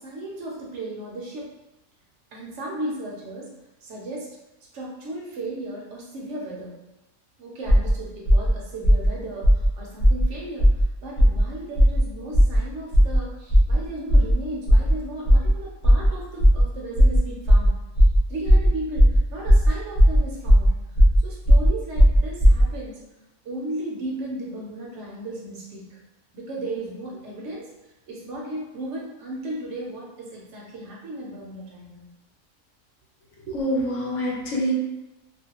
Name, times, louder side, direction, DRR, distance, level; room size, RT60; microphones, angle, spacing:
voice 1, 0.0-1.5 2.3-3.5 3.8-4.3 4.7-6.7 7.4-10.7 11.0-17.8 18.3-20.7 21.2-23.0 23.4-26.0 26.3-27.7 28.1-32.1 33.5-33.6, right 1 dB, 65° right, -3 dB, 0.8 m, -35 dB
sound 1, 7.7-7.9 8.3-8.5 8.8-9.1 9.4-9.7 10.0-10.2 10.6-10.8 11.2-11.4 11.8-12.0 12.3-12.6 12.9-13.2 13.5-13.7 14.1-14.3 14.7-14.9 15.2-15.5 15.8-16.1 16.4-16.6 17.0-17.2 17.5-17.7 18.0-18.2 18.5-18.7 19.0-19.2 19.5-19.7 20.0-20.2 20.5-20.7 21.0-21.2 21.5-21.7 22.0-22.6, equal, 50° left, 0.5 m, -15 dB
voice 2, 33.5-34.7, equal, 70° left, -2 dB, 0.9 m, -25 dB
2.4 x 2.1 x 2.8 m, 1.0 s
omnidirectional pair, 1.4 m